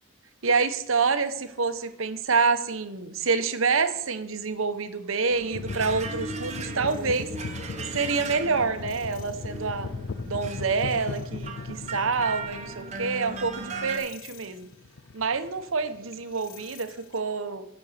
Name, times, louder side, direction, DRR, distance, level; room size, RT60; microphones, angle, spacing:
voice 1, 0.4-7.3 7.9-9.9 10.2-14.7 15.1-17.6, right 4 dB, 70° right, 10 dB, 0.9 m, -27 dB
sound 1, 5.3-14.0, right 3 dB, 30° right, 1.2 m, -38 dB
sound 2, 5.5-17.2, left 4 dB, 60° left, 0.4 m, -38 dB
10.5 x 5.2 x 6.6 m, 0.79 s
head